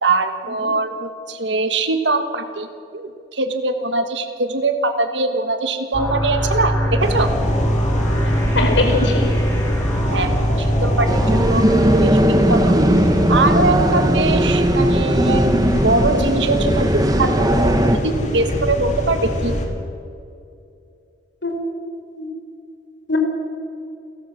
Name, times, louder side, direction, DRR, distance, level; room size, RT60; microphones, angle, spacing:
voice 1, 0.0-2.7 2.9-7.3 10.1-12.8 13.3-15.5 15.8-19.6, right 3 dB, 80° right, 8 dB, 1.3 m, -22 dB
sound 1, 5.9-11.5, equal, 15° left, 3.8 m, -21 dB
sound 2, 7.0-19.7, equal, 40° left, 2.7 m, -25 dB
voice 2, 8.0-9.2 21.4-21.6 22.2-22.3 23.1-23.2, left 2 dB, 85° left, 3 dB, 4.2 m, -22 dB
sound 3, 11.1-18.0, equal, 20° right, 1.2 m, -18 dB
28.5 x 12.5 x 7.8 m, 2.5 s
head